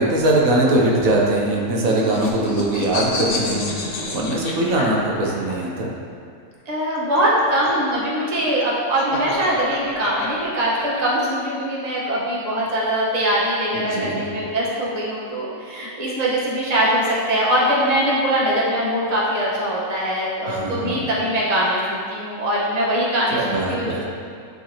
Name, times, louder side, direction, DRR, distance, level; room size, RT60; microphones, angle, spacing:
voice 1, 0.0-5.9 13.7-14.3 20.5-21.0 23.3-24.1, right 1 dB, 85° right, -3 dB, 1.4 m, -21 dB
sound 1, 1.5-5.5 6.8-11.0, left 3 dB, 90° left, 1.3 m, -29 dB
voice 2, 6.7-23.4 23.7-24.1, right 1 dB, 30° right, -6 dB, 1.2 m, -22 dB
10.5 x 3.9 x 2.8 m, 2.2 s
omnidirectional pair, 1.4 m